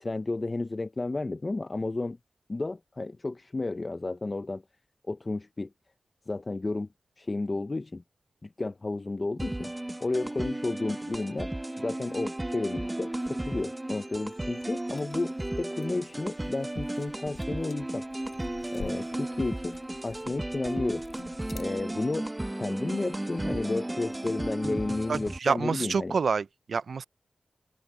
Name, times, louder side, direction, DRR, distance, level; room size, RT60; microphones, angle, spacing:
voice 1, 0.0-2.2 2.5-4.6 5.1-5.7 6.3-6.9 7.2-8.0 8.4-9.7 10.0-18.0 18.7-19.8 20.0-21.0 21.5-22.3 22.6-26.2, left 2 dB, 35° left, 0.6 m, -32 dB
sound 1, 9.4-25.4, right 1 dB, 20° right, 0.7 m, -34 dB
sound 2, 14.3-22.0, left 5 dB, 70° left, 3.6 m, -50 dB
voice 2, 25.1-27.0, right 5 dB, 80° right, 0.3 m, -28 dB
open air
wide cardioid pair, 80°, 0 cm